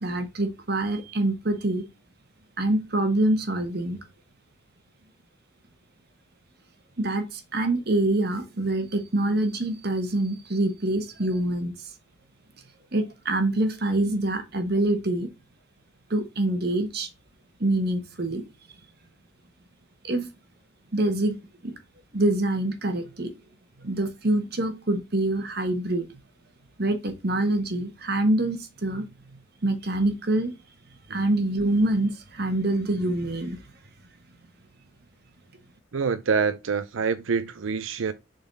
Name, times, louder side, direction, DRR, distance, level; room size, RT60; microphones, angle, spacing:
voice 1, 0.0-1.8 2.6-4.0 7.0-11.7 12.9-15.3 16.1-17.1 17.6-18.4 20.0-20.3 20.9-21.4 21.6-21.7 22.1-23.3 23.8-26.1 26.8-29.1 29.6-30.5 31.1-33.6, right 1 dB, 55° right, 1.2 m, -25 dB
voice 2, 35.9-38.1, right 5 dB, 85° right, 0.5 m, -26 dB
7.0 x 4.0 x 4.0 m
head